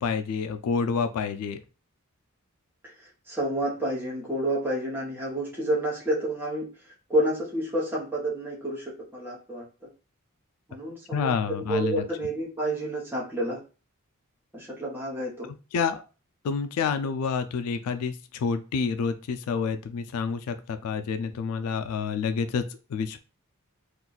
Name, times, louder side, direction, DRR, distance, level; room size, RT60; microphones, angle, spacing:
voice 1, 0.0-1.6 11.1-12.0 15.7-16.0 16.4-23.2, left 5 dB, 80° left, 8 dB, 0.3 m, -28 dB
voice 2, 3.3-6.7 7.1-9.6 10.7-13.6 14.5-15.5, right 1 dB, 10° right, -5 dB, 0.8 m, -29 dB
2.5 x 2.3 x 3.8 m, 0.33 s
head